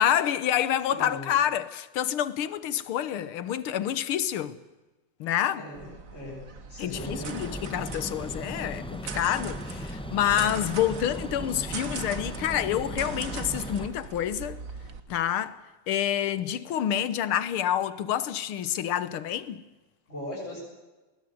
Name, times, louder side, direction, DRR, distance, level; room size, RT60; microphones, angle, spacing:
voice 1, 0.0-4.6 5.2-5.7 6.8-14.6 15.1-15.6 15.9-19.6, left 10 dB, 75° left, 1.9 m, -28 dB
voice 2, 0.9-1.3 5.6-6.4 6.7-7.4 20.1-20.6, left 1 dB, 30° left, 7.7 m, -39 dB
sound 1, 5.7-15.0, right 5 dB, 40° right, 1.8 m, -40 dB
sound 2, 6.9-13.9, equal, 5° left, 0.9 m, -37 dB
20.0 x 20.0 x 9.4 m
omnidirectional pair, 2.4 m